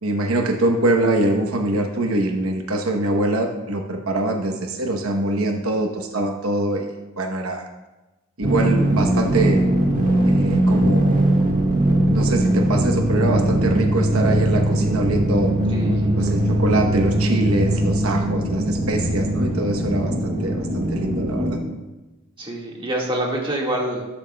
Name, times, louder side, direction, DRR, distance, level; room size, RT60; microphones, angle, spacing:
voice 1, 0.0-7.7 8.4-9.6 10.2-11.2 12.1-15.5 16.2-21.6, right 1 dB, 90° right, 3 dB, 1.0 m, -23 dB
sound 1, 8.4-21.6, right 1 dB, 40° right, 1.7 m, -20 dB
voice 2, 15.7-16.1 22.4-24.1, right 1 dB, 25° right, -2 dB, 1.8 m, -26 dB
12.5 x 11.5 x 2.3 m, 1.1 s
head